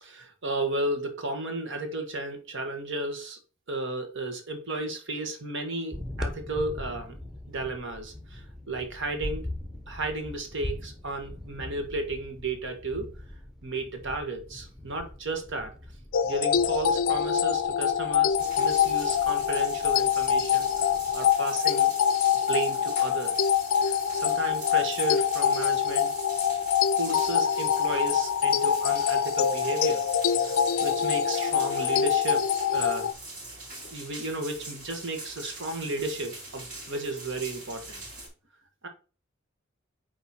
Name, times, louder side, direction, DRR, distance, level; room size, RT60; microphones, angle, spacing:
voice 1, 0.0-3.4 3.7-7.2 7.5-9.5 9.9-13.1 13.6-15.7 16.2-20.7 21.1-21.9 22.5-23.5 23.8-26.1 27.0-30.1 30.4-33.1 33.9-38.0 38.8-38.9, right 2 dB, 65° right, 1.5 m, -33 dB
sound 1, 5.9-21.4, left 1 dB, 5° right, 0.9 m, -41 dB
sound 2, 16.1-33.1, left 8 dB, 90° left, 0.5 m, -25 dB
sound 3, 18.4-38.3, right 2 dB, 40° right, 3.4 m, -43 dB
8.9 x 3.1 x 4.3 m
head